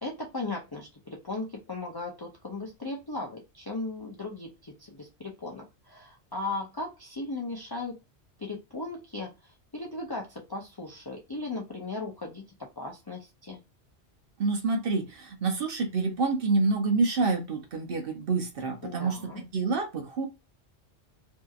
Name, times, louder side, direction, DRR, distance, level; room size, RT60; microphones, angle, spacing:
voice 1, 0.0-8.0 8.4-12.4 12.8-13.6 18.8-19.4, left 2 dB, 35° left, -1 dB, 0.3 m, -37 dB
voice 2, 14.4-20.3, right 3 dB, 60° right, 3 dB, 0.8 m, -27 dB
2.7 x 2.7 x 2.3 m, 0.25 s
omnidirectional pair, 1.2 m